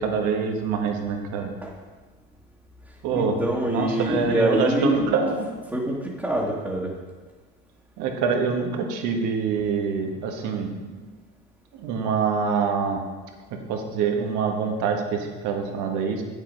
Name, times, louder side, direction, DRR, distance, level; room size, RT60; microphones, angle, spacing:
voice 1, 0.0-1.5 3.0-3.4 3.7-5.4 8.0-11.1 11.8-13.0 13.7-16.2, right 5 dB, 75° right, 3 dB, 1.6 m, -25 dB
voice 2, 3.1-5.1 5.7-6.9, equal, 5° right, -6 dB, 1.6 m, -25 dB
8.6 x 7.3 x 5.2 m, 1.3 s
supercardioid pair, 105°, 30 cm